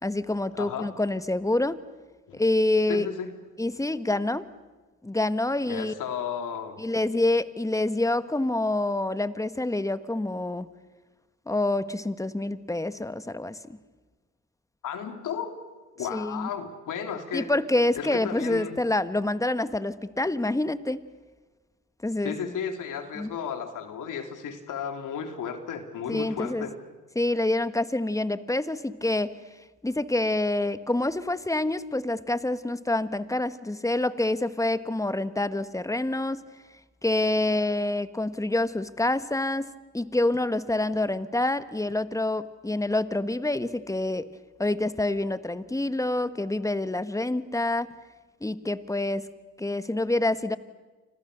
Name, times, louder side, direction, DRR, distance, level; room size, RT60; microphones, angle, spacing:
voice 1, 0.0-1.8 2.3-3.1 3.6-4.5 5.0-5.9 6.8-10.7 11.5-13.8 16.1-16.5 17.3-21.0 22.0-22.4 23.2-23.3 26.1-26.7 27.1-29.3 29.8-36.4 37.0-44.3 44.6-47.9 48.4-49.3 49.6-50.6, left 2 dB, 10° left, 13 dB, 1.4 m, -27 dB
voice 2, 0.5-0.9 2.3-2.4 2.9-3.3 5.7-6.8 14.8-15.6 16.0-17.5 18.0-18.7 22.2-26.7, left 7 dB, 65° left, 6 dB, 3.3 m, -34 dB
30.0 x 25.5 x 6.7 m, 1.3 s
supercardioid pair, 60°, 34 cm